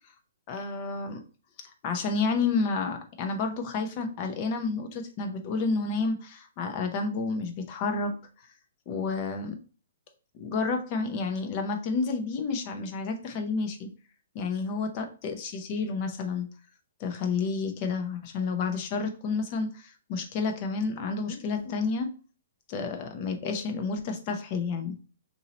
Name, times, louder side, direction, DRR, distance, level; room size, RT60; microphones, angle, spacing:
voice 1, 0.5-1.2 1.6-8.1 8.9-9.6 10.3-13.9 14.3-16.5 17.0-22.1 22.7-25.0, left 4 dB, 35° left, 5 dB, 0.7 m, -30 dB
2.9 x 2.7 x 4.0 m, 0.37 s
hypercardioid pair, 155°, 0 cm